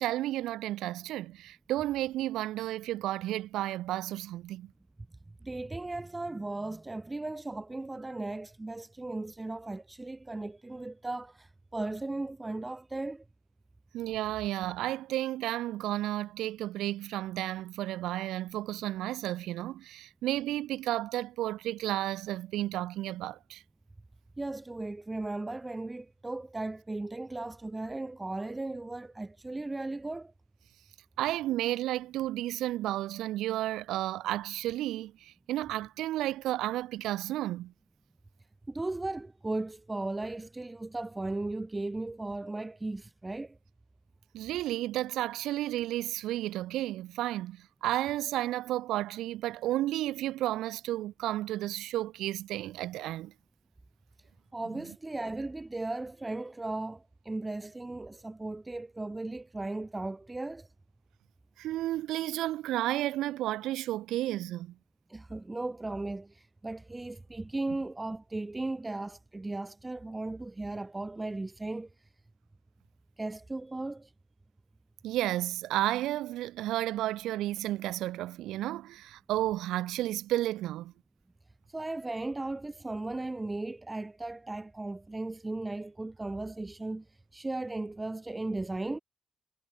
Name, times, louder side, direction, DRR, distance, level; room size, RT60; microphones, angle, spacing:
voice 1, 0.0-4.7 13.9-23.6 31.2-37.7 44.3-53.3 61.6-64.7 75.0-80.9, right 14 dB, 85° right, 4.9 m, -32 dB
voice 2, 5.4-13.2 24.4-30.3 38.7-43.6 54.5-60.7 65.1-72.1 73.2-74.1 81.7-89.0, right 2 dB, 15° right, 3.6 m, -36 dB
cardioid pair, 90°, 0 cm